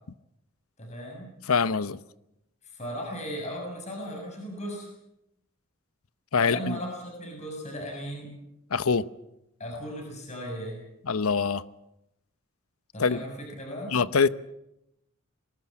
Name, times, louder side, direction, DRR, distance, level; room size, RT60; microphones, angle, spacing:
voice 1, 0.8-1.3 2.6-4.9 6.4-8.4 9.6-10.8 12.9-13.9, equal, 30° left, 1 dB, 6.7 m, -36 dB
voice 2, 1.5-2.0 6.3-6.8 8.7-9.0 11.1-11.6 13.0-13.2 13.9-14.3, left 5 dB, 85° left, 16 dB, 0.8 m, -24 dB
23.5 x 19.5 x 8.6 m, 0.86 s
head